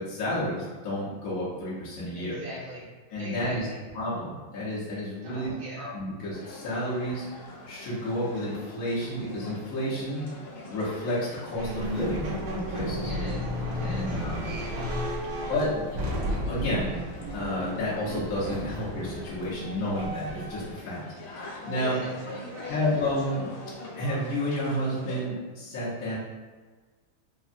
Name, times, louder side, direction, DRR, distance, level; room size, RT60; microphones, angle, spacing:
voice 1, 0.0-2.4 3.1-3.7 3.9-7.3 7.7-10.2 10.7-12.3 12.5-13.1 13.8-14.5 15.5-15.9 16.5-17.1 17.3-21.0 21.3-22.0 22.7-23.5 24.0-26.1, left 1 dB, 60° left, -9 dB, 0.9 m, -31 dB
voice 2, 2.1-2.9 3.2-3.8 5.2-5.9 12.9-15.5 21.7-23.0, equal, 40° right, -8 dB, 0.8 m, -42 dB
sound 1, 6.3-25.2, left 2 dB, 85° left, 1.5 m, -44 dB
sound 2, 11.6-20.7, equal, 70° right, 1.0 m, -33 dB
3.4 x 2.0 x 2.5 m, 1.4 s
omnidirectional pair, 2.3 m